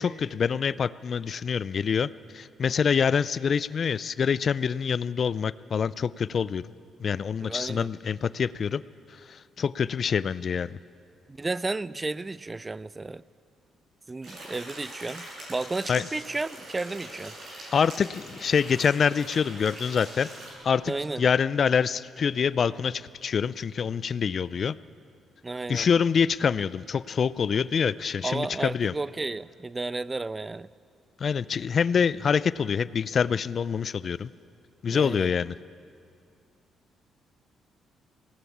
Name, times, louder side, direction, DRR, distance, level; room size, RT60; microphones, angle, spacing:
voice 1, 0.0-2.1 2.3-6.7 7.0-8.8 9.3-10.8 15.9-16.1 17.7-20.3 20.6-24.7 25.7-28.9 31.2-34.3 34.8-35.6, left 6 dB, 50° left, 18 dB, 0.4 m, -26 dB
voice 2, 7.4-7.9 11.3-13.2 14.1-17.3 20.9-21.2 25.4-25.9 28.2-30.7 34.9-35.3, right 3 dB, 20° right, 19 dB, 0.4 m, -33 dB
sound 1, 14.2-20.5, right 1 dB, 55° right, 7.5 m, -43 dB
20.5 x 18.0 x 8.6 m, 2.3 s
cardioid pair, 90°, 0 cm